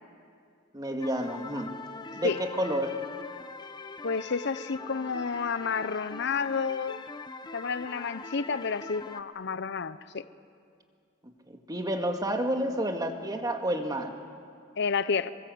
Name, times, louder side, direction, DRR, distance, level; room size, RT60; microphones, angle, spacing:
voice 1, 0.7-3.0 11.5-14.1, equal, 20° right, 2.0 m, -30 dB
sound 1, 1.0-9.2, left 4 dB, 20° left, 0.8 m, -43 dB
voice 2, 4.0-7.0 7.5-10.2 14.8-15.3, left 5 dB, 60° left, 0.7 m, -30 dB
26.5 x 23.5 x 7.9 m
head